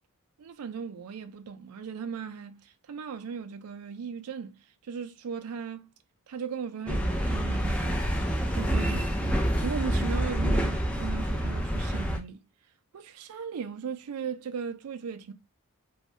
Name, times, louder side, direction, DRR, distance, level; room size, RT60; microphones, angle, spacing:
voice 1, 0.4-2.6 2.9-4.5 4.9-5.9 6.3-8.0 8.5-9.1 9.6-12.4 12.9-15.3, right 6 dB, 85° right, 0.4 m, -37 dB
sound 1, 6.9-12.2, equal, 5° left, 0.4 m, -27 dB
2.6 x 2.2 x 3.0 m
head